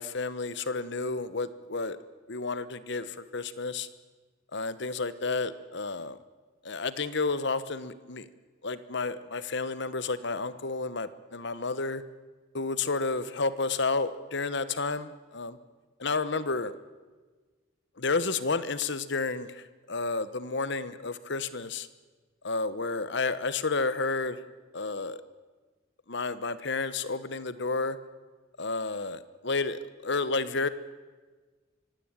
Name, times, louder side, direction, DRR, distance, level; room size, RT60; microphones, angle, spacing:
voice 1, 0.0-2.0 2.3-3.9 4.5-6.2 6.6-8.3 8.6-12.0 12.5-15.6 16.0-16.7 18.0-21.9 22.4-24.4 24.7-25.2 26.1-28.0 28.6-30.7, left 3 dB, 65° left, 14 dB, 1.2 m, -31 dB
24.0 x 17.0 x 9.0 m, 1.4 s
head